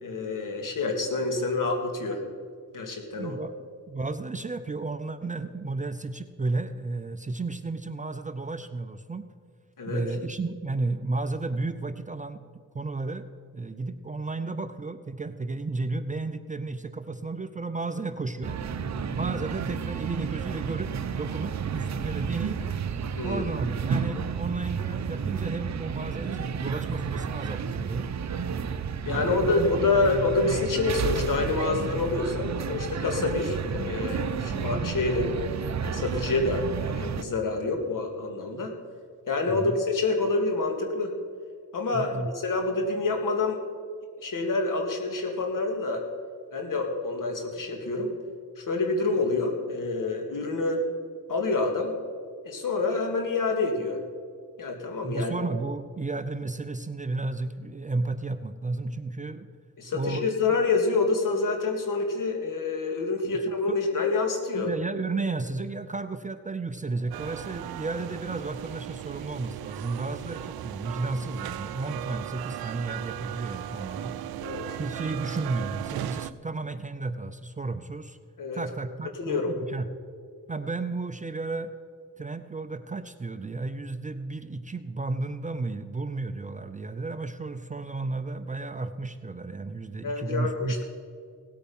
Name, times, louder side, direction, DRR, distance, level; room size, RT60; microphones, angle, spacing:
voice 1, 0.0-2.2 2.7-3.4 9.8-10.1 23.2-23.4 29.1-35.3 35.8-38.8 39.3-41.1 41.7-43.6 44.2-46.0 46.5-48.1 48.6-50.8 51.3-52.0 52.4-54.0 54.6-55.3 59.8-64.7 74.4-74.7 78.4-78.6 79.2-79.5 90.0-90.8, left 3 dB, 60° left, 4 dB, 2.1 m, -27 dB
voice 2, 3.2-9.3 9.9-12.4 12.7-13.3 13.5-18.6 19.1-22.6 23.2-28.1 29.1-29.8 39.5-39.8 41.9-42.3 55.0-59.5 59.9-60.3 63.2-63.8 64.5-74.1 74.8-78.2 78.5-79.9 80.5-81.7 82.2-90.8, right 3 dB, 20° right, 10 dB, 0.5 m, -33 dB
sound 1, 18.4-37.2, right 6 dB, 50° right, 0.7 m, -31 dB
sound 2, 67.1-76.3, right 13 dB, 85° right, 0.5 m, -37 dB
17.5 x 8.7 x 5.4 m, 2.1 s
cardioid pair, 95°, 36 cm